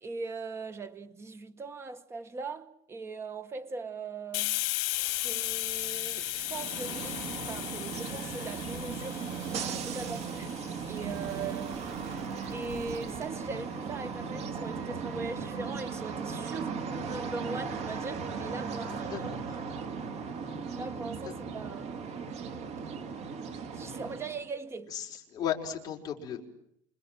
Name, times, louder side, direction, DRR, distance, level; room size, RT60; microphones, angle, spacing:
voice 1, 0.0-4.6 5.2-10.5 10.9-12.1 12.5-19.3 20.7-22.2 23.7-25.0, right 4 dB, 15° right, 1.5 m, -40 dB
Hiss, 4.3-11.7, left 24 dB, 90° left, 1.1 m, -36 dB
sound 1, 4.9-13.3, right 9 dB, 85° right, 3.3 m, -50 dB
sound 2, 6.4-24.5, right 5 dB, 45° right, 2.9 m, -37 dB
voice 2, 18.9-19.2 20.4-20.5 21.2-21.3 24.9-26.5, left 9 dB, 25° left, 4.9 m, -35 dB
29.0 x 26.5 x 7.6 m
cardioid pair, 170°, 15 cm